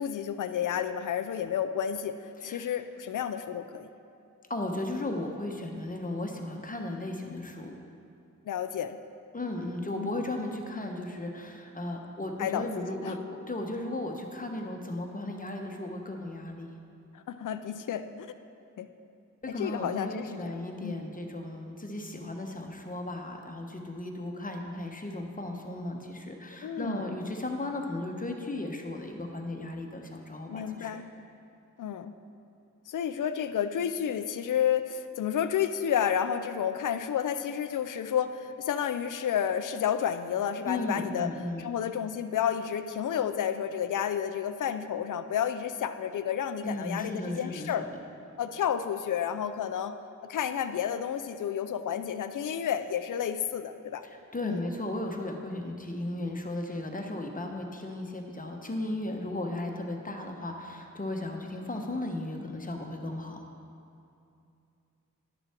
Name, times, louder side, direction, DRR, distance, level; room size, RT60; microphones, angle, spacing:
voice 1, 0.0-3.9 8.4-9.0 10.0-10.1 12.4-12.7 13.0-13.2 17.3-18.3 18.8-18.9 19.5-20.5 20.8-21.0 26.6-27.1 30.5-31.1 31.8-32.1 32.9-41.3 41.6-47.9 48.4-49.9 50.3-54.0 54.4-54.6, left 9 dB, 75° left, 10 dB, 0.5 m, -31 dB
voice 2, 4.5-7.8 9.3-16.7 19.4-31.0 40.6-41.6 46.6-47.7 54.0-63.4, left 1 dB, 25° left, 3 dB, 1.0 m, -35 dB
11.0 x 6.8 x 4.4 m, 2.6 s
cardioid pair, 80°, 32 cm